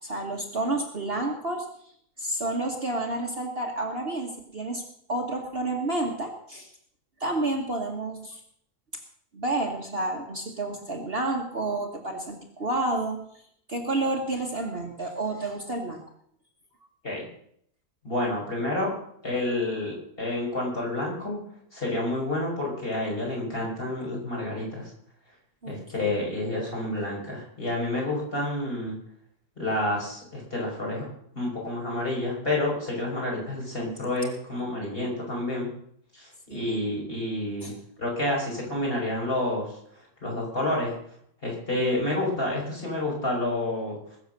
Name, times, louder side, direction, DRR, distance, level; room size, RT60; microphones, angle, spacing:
voice 1, 0.0-1.6 2.2-4.8 5.1-6.7 7.2-8.4 9.3-13.2 13.7-16.0 25.6-25.8 26.1-26.2 36.5-36.8 37.6-37.7, right 2 dB, 40° right, 2 dB, 1.6 m, -30 dB
voice 2, 18.0-18.9 19.2-21.4 21.7-24.9 25.7-29.0 29.6-31.1 31.3-35.7 36.1-37.7 38.0-39.7 40.2-40.9 41.4-44.0, left 1 dB, 35° left, -3 dB, 5.7 m, -29 dB
20.5 x 7.2 x 6.6 m, 0.65 s
omnidirectional pair, 1.7 m